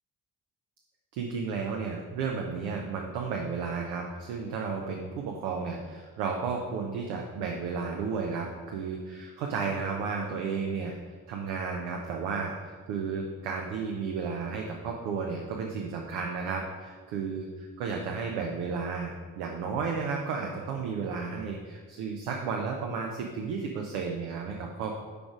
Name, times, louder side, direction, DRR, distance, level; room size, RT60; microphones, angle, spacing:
voice 1, 1.1-11.0 11.3-25.0, right 5 dB, 65° right, 1 dB, 0.7 m, -33 dB
5.1 x 4.9 x 4.8 m, 1.5 s
figure-of-eight pair, 40°, 49 cm